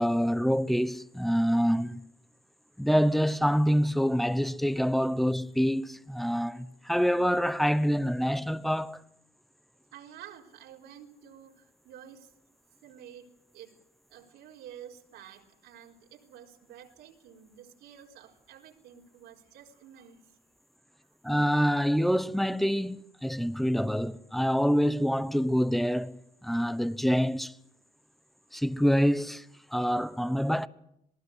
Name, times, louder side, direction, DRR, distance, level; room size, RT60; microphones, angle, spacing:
voice 1, 0.0-2.0 2.8-9.0 21.2-27.5 28.5-29.4 29.7-30.7, equal, ahead, 1.0 m, -26 dB
voice 2, 9.9-12.3 12.8-13.8 14.1-20.3 21.0-21.1, right 9 dB, 85° right, 4.2 m, -50 dB
26.5 x 19.0 x 8.1 m
cardioid pair, 110°, 17 cm